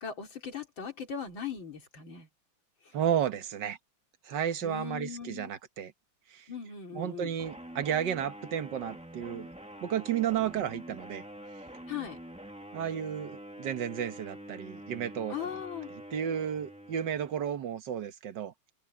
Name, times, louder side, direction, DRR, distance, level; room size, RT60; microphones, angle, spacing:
voice 1, 0.0-2.3 4.6-5.5 6.5-7.4 11.9-12.2 15.3-15.9, left 7 dB, 70° left, 3.8 m, -39 dB
voice 2, 2.9-3.8 4.3-5.9 6.3-6.5 6.9-9.5 9.8-11.2 12.7-15.5 16.1-18.5, right 9 dB, 60° right, 1.8 m, -32 dB
sound 1, 7.4-17.6, equal, 5° right, 1.4 m, -46 dB
omnidirectional pair, 2.2 m